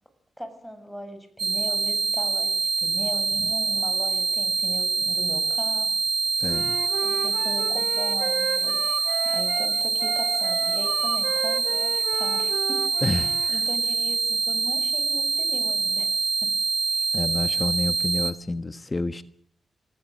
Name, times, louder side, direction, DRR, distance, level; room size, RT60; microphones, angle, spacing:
voice 1, 0.4-6.0 6.3-6.5 7.0-16.5 16.9-17.1, equal, ahead, 8 dB, 7.3 m, -39 dB
sound 1, 1.4-18.3, right 4 dB, 55° right, 3.7 m, -25 dB
voice 2, 6.4-6.8 13.0-13.6 17.1-19.2, left 2 dB, 30° left, 11 dB, 1.5 m, -29 dB
Wind instrument woodwind instrument, 6.4-13.5, right 7 dB, 85° right, 2.8 m, -33 dB
27.5 x 19.0 x 7.8 m, 0.64 s
cardioid pair, 75°, 0 cm